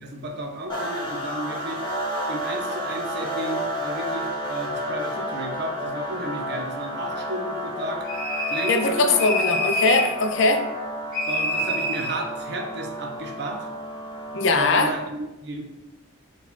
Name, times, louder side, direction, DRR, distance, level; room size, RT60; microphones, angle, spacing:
voice 1, 0.0-1.8 2.3-8.1 8.5-9.2 11.3-13.7 14.6-15.6, right 1 dB, 50° right, 2 dB, 0.5 m, -33 dB
sound 1, 0.7-14.9, equal, 20° left, 0.9 m, -31 dB
sound 2, 8.1-8.9 9.2-10.1 11.1-12.2, left 1 dB, ahead, 1.3 m, -26 dB
voice 2, 8.7-10.7 14.3-14.9, left 3 dB, 65° left, 7 dB, 0.4 m, -21 dB
4.3 x 2.2 x 4.1 m, 1.0 s
head